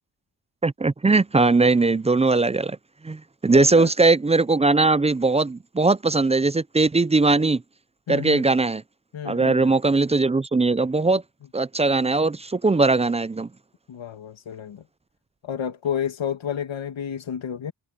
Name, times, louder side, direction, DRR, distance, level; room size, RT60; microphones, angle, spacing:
voice 1, 0.6-2.8 3.0-7.6 8.1-8.8 9.3-11.2 11.5-13.5, right 3 dB, 15° right, 0.3 m, -20 dB
voice 2, 3.5-3.9 8.1-8.4 9.1-9.7 13.9-14.8 15.4-17.7, left 8 dB, 85° left, 2.1 m, -30 dB
wide cardioid pair, 120°, 45 cm